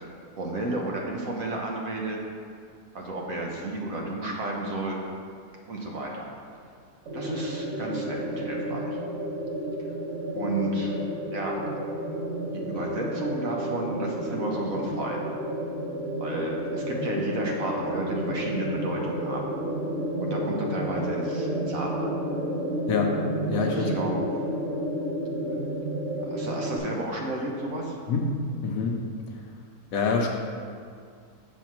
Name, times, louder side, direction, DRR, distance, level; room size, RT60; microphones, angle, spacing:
voice 1, 0.4-2.2 2.9-5.0 5.7-6.2 7.1-8.9 10.3-11.0 11.3-11.6 12.5-15.2 16.2-19.4 20.2-22.1 23.7-24.2 26.2-28.0, right 2 dB, 65° right, -1 dB, 1.3 m, -32 dB
sound 1, 7.1-26.8, right 1 dB, 50° right, 1.5 m, -31 dB
voice 2, 22.9-23.2 23.5-23.9 28.1-29.0 29.9-30.3, left 4 dB, 65° left, 1 dB, 1.1 m, -26 dB
6.8 x 3.8 x 5.9 m, 2.2 s
omnidirectional pair, 1.6 m